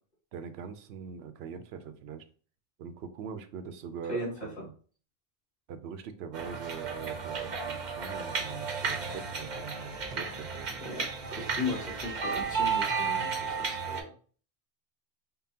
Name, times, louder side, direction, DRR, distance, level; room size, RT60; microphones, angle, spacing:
voice 1, 0.3-2.2 2.8-4.7 5.7-11.1 11.4-11.7, right 7 dB, 85° right, 10 dB, 0.8 m, -42 dB
voice 2, 4.1-4.6 10.8-14.1, left 2 dB, 45° left, -4 dB, 1.9 m, -37 dB
sound 1, 6.3-14.0, right 5 dB, 50° right, 0.7 m, -33 dB
5.3 x 2.2 x 2.8 m, 0.41 s
omnidirectional pair, 1.0 m